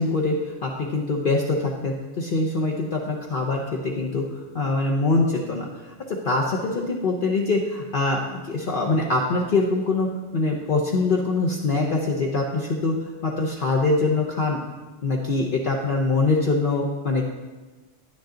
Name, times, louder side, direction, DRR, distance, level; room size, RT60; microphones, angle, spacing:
voice 1, 0.0-4.3 4.5-5.7 6.1-10.1 10.3-14.6 15.0-17.2, left 3 dB, 50° left, -1 dB, 1.0 m, -23 dB
10.5 x 9.7 x 3.8 m, 1.2 s
omnidirectional pair, 1.2 m